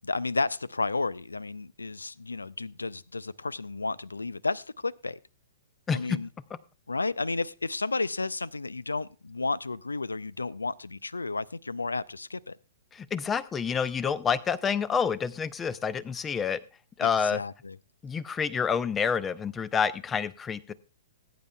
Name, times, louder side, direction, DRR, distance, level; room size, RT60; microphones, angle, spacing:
voice 1, 0.0-5.2 5.9-6.3 6.9-12.6 17.0-17.8, left 3 dB, 75° left, 24 dB, 0.4 m, -32 dB
voice 2, 5.9-6.2 12.9-16.6 17.0-17.4 18.0-20.7, left 6 dB, 15° left, 18 dB, 0.6 m, -28 dB
20.0 x 9.4 x 2.2 m, 0.34 s
figure-of-eight pair, 110°, 0 cm